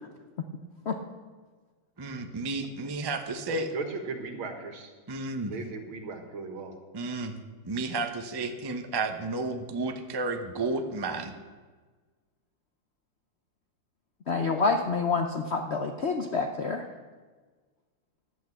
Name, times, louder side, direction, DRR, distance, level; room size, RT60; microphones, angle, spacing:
voice 1, 2.0-3.7 5.1-5.5 6.9-7.4 7.6-11.4, right 3 dB, 40° right, 6 dB, 0.3 m, -32 dB
voice 2, 3.5-4.9 5.5-6.7, right 4 dB, 85° right, 5 dB, 2.3 m, -37 dB
voice 3, 14.3-16.8, left 4 dB, 65° left, 5 dB, 0.6 m, -27 dB
11.5 x 8.5 x 7.8 m, 1.4 s
omnidirectional pair, 2.2 m